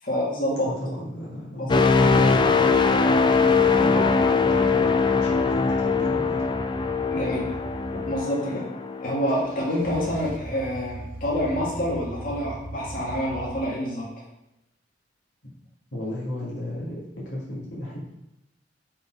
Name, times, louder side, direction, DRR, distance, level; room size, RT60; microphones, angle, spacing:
voice 1, 0.0-0.7 1.7-2.2 7.1-7.5 7.9-8.7 9.0-14.1, equal, 50° left, -5 dB, 2.1 m, -27 dB
voice 2, 0.6-2.7 3.4-6.4 15.4-15.5 15.9-18.1, left 1 dB, 75° left, -6 dB, 1.9 m, -34 dB
sound 1, 1.7-9.5 10.0-10.2, left 4 dB, 25° left, 0.4 m, -21 dB
sound 2, 3.2-8.2 9.3-13.6, right 1 dB, 50° right, 0.6 m, -39 dB
6.9 x 4.0 x 4.5 m, 0.88 s
head